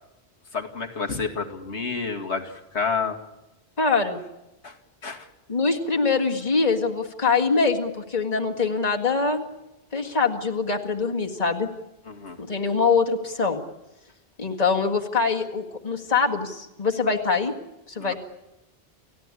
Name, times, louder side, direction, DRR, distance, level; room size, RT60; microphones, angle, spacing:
voice 1, 0.5-3.2 4.6-4.7 5.0-5.3 12.1-12.4 18.0-18.1, left 5 dB, 85° left, 3 dB, 2.4 m, -29 dB
voice 2, 3.8-4.2 5.5-9.5 9.9-11.7 12.4-13.6 14.4-17.5 17.9-18.1, left 4 dB, 35° left, 2 dB, 2.1 m, -23 dB
29.5 x 16.0 x 9.8 m, 0.97 s
omnidirectional pair, 1.1 m